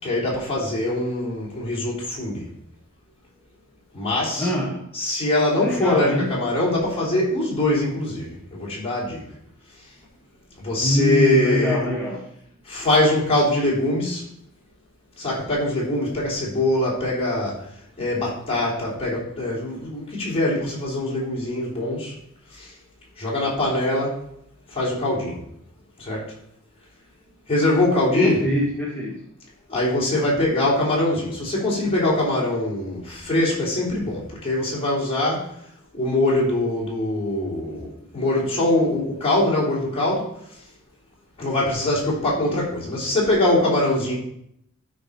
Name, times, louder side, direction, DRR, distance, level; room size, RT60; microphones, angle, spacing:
voice 1, 0.0-2.4 3.9-4.5 4.9-9.2 10.6-11.9 12.7-14.2 15.2-17.6 18.0-22.1 22.6-22.7 23.2-24.2 24.7-25.4 26.0-26.2 27.5-28.4 29.7-35.5 35.9-40.3 41.4-44.1, left 1 dB, 25° left, -6 dB, 3.5 m, -23 dB
voice 2, 4.4-4.8 5.6-6.3 10.8-12.2 28.1-29.2, equal, 10° left, -6 dB, 1.4 m, -23 dB
12.0 x 5.2 x 4.2 m, 0.72 s
head